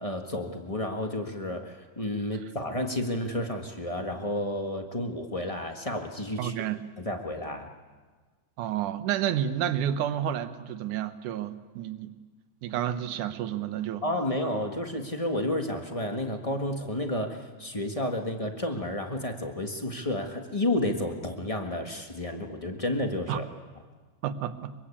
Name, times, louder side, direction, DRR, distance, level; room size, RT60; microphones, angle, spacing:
voice 1, 0.0-6.6 7.0-7.7 14.0-23.5, left 1 dB, 35° left, 4 dB, 0.5 m, -31 dB
voice 2, 6.4-6.8 8.6-12.2 12.6-14.0 23.3-23.4 24.2-24.7, right 10 dB, 75° right, 11 dB, 2.5 m, -30 dB
24.0 x 23.5 x 8.5 m, 1.4 s
omnidirectional pair, 3.7 m